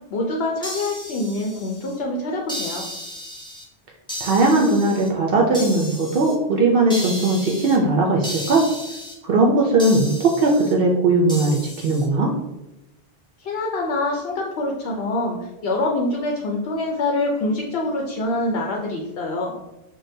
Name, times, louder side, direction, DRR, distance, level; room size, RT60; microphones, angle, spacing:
voice 1, 0.1-2.9 13.4-19.5, left 2 dB, 80° left, 0 dB, 0.8 m, -25 dB
sound 1, 0.6-2.0 2.5-3.6 4.1-5.1 5.5-6.3 6.9-7.8 8.2-9.1 9.8-10.7 11.3-12.1, equal, 5° left, 0.6 m, -34 dB
voice 2, 4.2-8.7 9.2-12.3, right 2 dB, 70° right, -1 dB, 0.7 m, -18 dB
6.2 x 2.2 x 2.6 m, 0.99 s
omnidirectional pair, 1.0 m